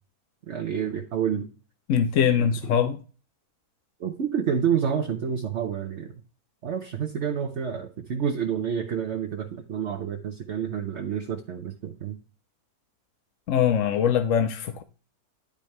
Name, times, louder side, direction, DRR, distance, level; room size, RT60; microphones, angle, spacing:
voice 1, 0.5-1.5 4.0-6.1 6.6-12.2, right 8 dB, 55° right, 0.9 m, -28 dB
voice 2, 1.9-3.0 13.5-14.8, left 8 dB, 65° left, 0.9 m, -22 dB
10.5 x 5.0 x 3.1 m
omnidirectional pair, 1.6 m